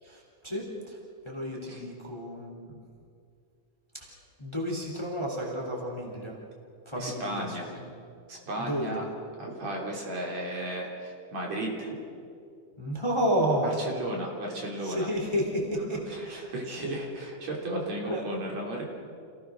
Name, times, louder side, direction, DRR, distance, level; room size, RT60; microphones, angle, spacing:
voice 1, 0.0-1.0 1.2-2.8 3.9-6.4 6.8-7.8 8.6-9.0 12.8-13.7 14.8-16.5 16.8-17.0 18.0-18.2, equal, 10° left, -1 dB, 3.1 m, -31 dB
voice 2, 7.0-7.7 8.3-9.0 9.4-12.0 13.6-15.1 16.1-18.8, right 1 dB, 60° right, -1 dB, 4.5 m, -34 dB
28.0 x 17.0 x 6.4 m, 2.4 s
omnidirectional pair, 3.5 m